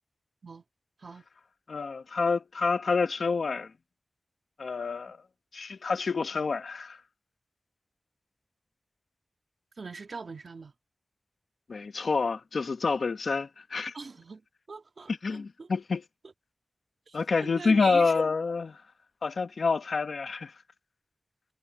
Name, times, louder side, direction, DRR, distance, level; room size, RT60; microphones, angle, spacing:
voice 1, 1.7-3.7 4.6-5.2 5.5-7.0 11.7-13.9 15.2-16.0 17.1-18.8 19.2-20.5, left 4 dB, 85° left, 1.1 m, -28 dB
voice 2, 9.8-10.7 13.9-15.7 16.2-16.3 17.1-18.3, right 4 dB, 70° right, 2.4 m, -41 dB
wide cardioid pair, 85°, 0 cm